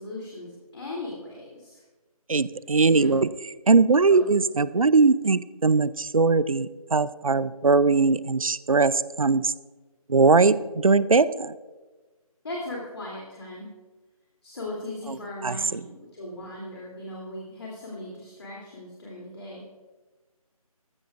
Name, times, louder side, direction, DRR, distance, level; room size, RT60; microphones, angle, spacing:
voice 1, 0.0-1.8 2.9-3.1 4.1-4.2 12.4-13.7 14.4-19.6, left 1 dB, 45° left, -3 dB, 3.0 m, -38 dB
voice 2, 2.3-3.3 3.7-9.5 10.1-11.5 15.1-15.2 15.4-15.8, right 4 dB, 65° right, 17 dB, 0.6 m, -20 dB
17.0 x 15.0 x 2.5 m, 1.2 s
figure-of-eight pair, 160°, 19 cm